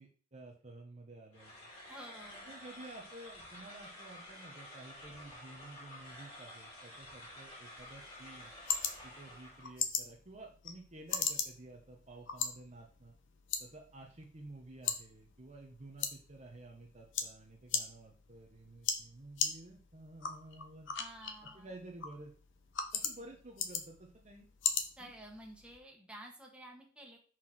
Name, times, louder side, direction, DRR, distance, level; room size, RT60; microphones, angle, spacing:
voice 1, 0.0-1.7 2.5-8.5 9.0-13.1 13.6-20.9 21.5-22.3 22.9-24.5 25.0-25.1, right 2 dB, 35° right, 1 dB, 1.1 m, -52 dB
sound 1, 1.3-9.8, left 1 dB, 30° left, 3.3 m, -51 dB
voice 2, 1.9-2.6 20.9-21.7 25.0-27.2, right 1 dB, 5° right, 0 dB, 1.7 m, -51 dB
sound 2, 7.8-25.8, left 6 dB, 65° left, 1.0 m, -40 dB
5.9 x 4.7 x 6.2 m, 0.43 s
head